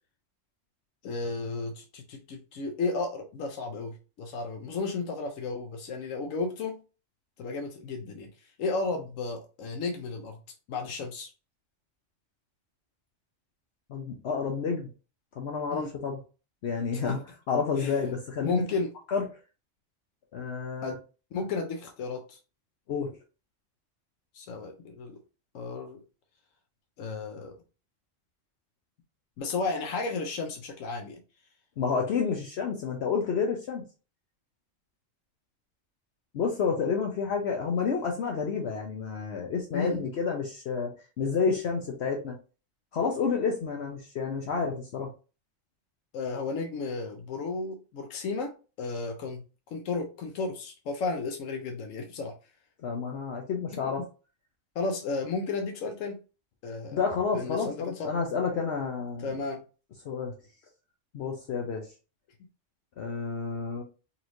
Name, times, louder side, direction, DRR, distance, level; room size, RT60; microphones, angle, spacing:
voice 1, 1.0-6.8 7.4-10.4 10.7-11.3 15.7-15.9 16.9-17.2 17.8-18.0 18.4-18.9 20.8-21.0 21.3-22.4 24.3-25.2 25.5-26.0 27.0-27.6 29.4-31.2 39.7-40.0 46.1-48.5 48.8-49.4 49.7-52.3 54.7-56.2 56.6-57.0 57.3-58.1 59.2-59.6, left 3 dB, 85° left, 4 dB, 1.1 m, -33 dB
voice 2, 13.9-14.9 15.4-16.2 16.6-17.2 17.5-18.6 19.1-19.2 20.3-20.9 22.9-23.1 31.8-33.8 36.3-40.9 41.2-42.3 42.9-45.1 52.8-54.0 56.9-59.3 60.0-60.3 61.1-61.8 63.0-63.8, left 5 dB, 60° left, 1 dB, 0.9 m, -29 dB
4.1 x 3.0 x 2.6 m, 0.33 s
omnidirectional pair, 1.3 m